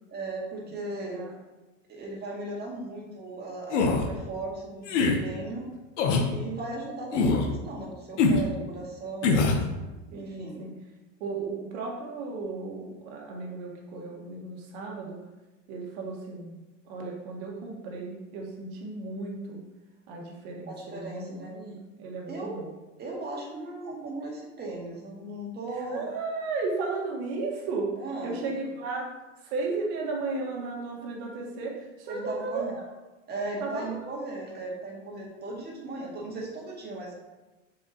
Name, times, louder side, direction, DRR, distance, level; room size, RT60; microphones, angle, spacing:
voice 1, 0.1-1.2 1.9-5.7 6.1-9.7 10.1-10.6 20.7-21.5 22.3-22.6 23.0-26.1 28.0-28.3 28.7-28.8 32.1-32.7 33.3-37.1, right 2 dB, 25° right, -2 dB, 1.9 m, -37 dB
voice 2, 1.0-1.3 10.1-10.7 11.2-15.2 15.7-19.6 20.1-22.7 25.7-32.8 33.6-34.0, right 3 dB, 60° right, 0 dB, 1.7 m, -35 dB
sound 1, 3.7-4.1 4.9-5.2 6.0-6.3 7.1-7.5 8.2-8.4 9.2-9.6, left 4 dB, 70° left, 1.0 m, -23 dB
6.9 x 4.8 x 3.0 m, 1.1 s
hypercardioid pair, 100°, 37 cm